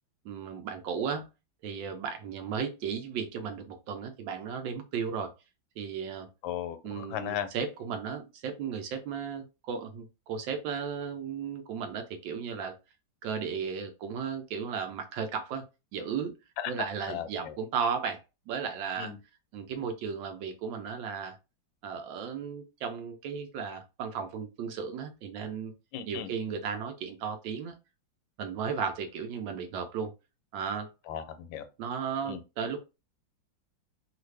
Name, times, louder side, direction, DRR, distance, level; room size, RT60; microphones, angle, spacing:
voice 1, 0.2-1.3 1.6-5.3 5.8-6.3 6.8-12.7 13.2-15.6 15.9-16.3 16.7-19.1 19.5-21.4 21.8-25.7 26.1-27.7 28.4-30.1 30.5-30.9 31.8-32.8, right 6 dB, 80° right, 1.3 m, -35 dB
voice 2, 6.4-7.5 16.6-16.7 17.1-17.6 19.0-19.2 25.9-26.3 31.1-31.6 32.2-32.4, left 10 dB, 80° left, 1.3 m, -36 dB
3.2 x 2.5 x 3.2 m
omnidirectional pair, 2.1 m